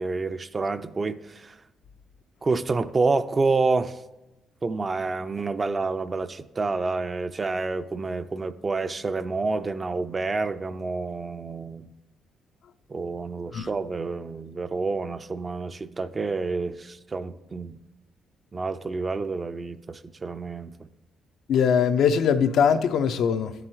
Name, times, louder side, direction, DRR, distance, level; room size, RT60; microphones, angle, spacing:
voice 1, 0.0-1.6 2.4-4.0 4.6-11.9 12.9-17.8 18.5-20.9, right 3 dB, 30° right, 0.4 m, -28 dB
voice 2, 21.5-23.5, left 7 dB, 75° left, 0.4 m, -21 dB
10.5 x 7.6 x 3.1 m
cardioid pair, 90°, 0 cm